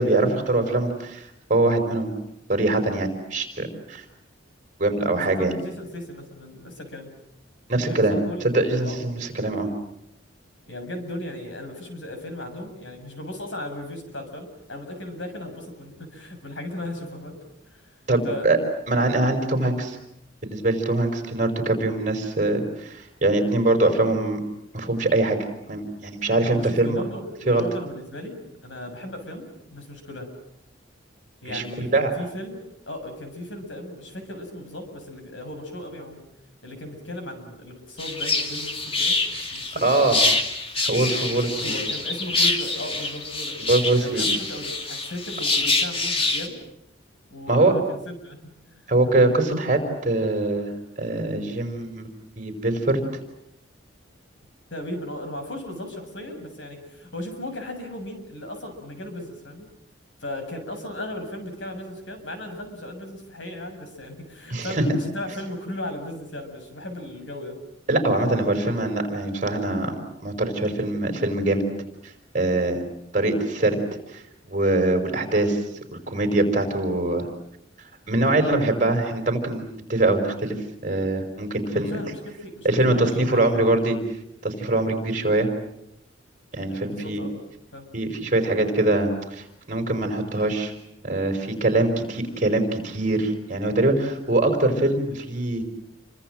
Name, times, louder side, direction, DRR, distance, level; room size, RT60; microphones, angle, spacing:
voice 1, 0.0-2.1 2.5-4.0 4.8-5.5 7.7-8.2 8.4-9.7 18.1-18.6 18.9-20.0 20.4-24.4 24.7-25.4 25.7-27.0 27.5-27.6 31.5-32.1 39.3-39.4 39.8-40.2 40.8-41.7 43.6-44.2 47.5-47.7 48.9-50.7 51.0-52.1 52.4-53.0 64.5-64.8 67.9-70.0 70.2-71.6 72.3-72.8 73.1-73.8 74.1-74.2 74.5-75.6 75.9-77.3 78.1-80.5 80.8-81.9 82.6-84.0 84.4-85.5 86.5-87.2 87.9-90.7 91.0-95.6, right 2 dB, 40° right, 6 dB, 5.1 m, -23 dB
voice 2, 5.0-7.1 7.8-8.4 8.8-9.0 10.7-17.4 17.7-17.8 18.2-18.5 26.5-28.4 28.6-30.3 31.4-32.6 32.9-36.2 36.6-40.1 41.6-43.6 44.0-46.6 47.3-48.4 48.7-48.9 54.7-59.7 60.2-67.6 81.7-83.7 86.7-87.3 87.7-87.9, left 1 dB, 75° left, 6 dB, 7.3 m, -36 dB
sound 1, 38.0-46.5, left 3 dB, 30° left, 2.7 m, -25 dB
29.5 x 25.0 x 7.6 m, 0.79 s
head